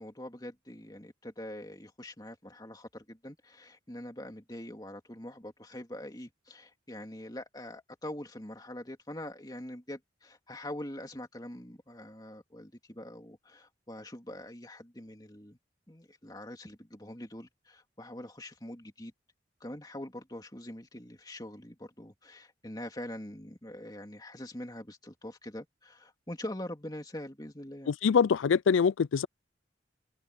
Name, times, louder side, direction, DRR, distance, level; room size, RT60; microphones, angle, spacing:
voice 1, 0.0-15.6 15.9-19.1 19.6-27.9, left 1 dB, 20° left, 2.8 m, -44 dB
voice 2, 27.9-29.3, left 6 dB, 85° left, 0.4 m, -24 dB
open air
head